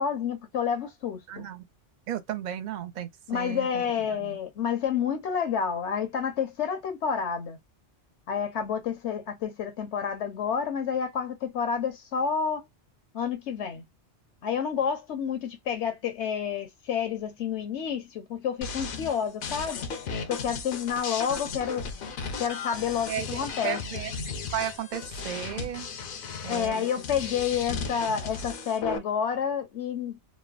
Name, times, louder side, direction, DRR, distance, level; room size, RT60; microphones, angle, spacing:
voice 1, 0.0-1.5 3.3-7.6 8.3-12.7 13.1-13.8 14.4-19.8 20.3-21.8 22.4-23.8 26.5-30.2, left 7 dB, 80° left, 1.0 m, -29 dB
voice 2, 1.3-1.7 2.1-4.4 21.3-21.4 23.1-25.9 26.4-26.9, right 10 dB, 55° right, 0.5 m, -35 dB
sound 1, 18.6-29.0, left 5 dB, 60° left, 0.6 m, -36 dB
3.2 x 2.0 x 2.3 m
omnidirectional pair, 1.2 m